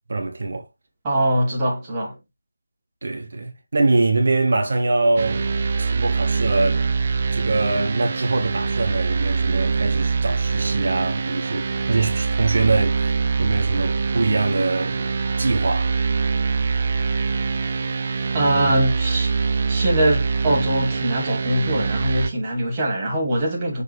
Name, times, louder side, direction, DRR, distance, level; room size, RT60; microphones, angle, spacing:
voice 1, 0.1-0.7 3.0-5.5 5.8-6.9 7.3-13.1 13.4-16.0, right 3 dB, 55° right, 1.4 m, -23 dB
voice 2, 1.0-2.2 18.3-19.3 19.7-23.8, right 1 dB, 20° right, 2.6 m, -22 dB
sound 1, 5.2-22.3, right 4 dB, 35° right, 0.7 m, -23 dB
7.1 x 4.4 x 3.2 m
figure-of-eight pair, 165°, 0 cm